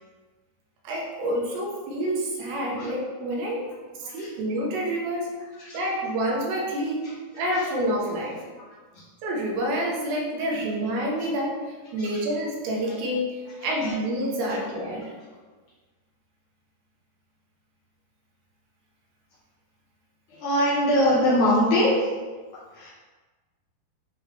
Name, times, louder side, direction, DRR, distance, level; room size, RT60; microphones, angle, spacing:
voice 1, 0.8-3.7 4.1-5.3 5.7-7.1 7.3-8.4 9.2-11.6 11.9-15.1, right 1 dB, 85° right, -2 dB, 3.2 m, -28 dB
voice 2, 20.3-22.1 22.7-22.9, left 1 dB, 80° left, -7 dB, 1.7 m, -23 dB
9.5 x 3.4 x 3.0 m, 1.4 s
omnidirectional pair, 4.7 m